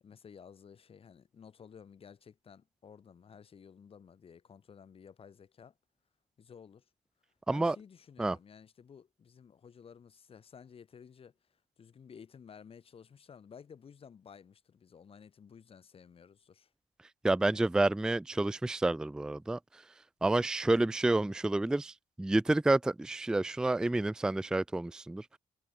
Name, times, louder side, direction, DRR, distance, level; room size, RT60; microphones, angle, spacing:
voice 1, 0.0-5.7 6.4-6.8 7.5-16.7 17.4-17.6, left 7 dB, 40° left, 1.6 m, -54 dB
voice 2, 17.2-19.6 20.2-25.3, right 2 dB, 5° right, 0.3 m, -29 dB
cardioid pair, 120°, 14 cm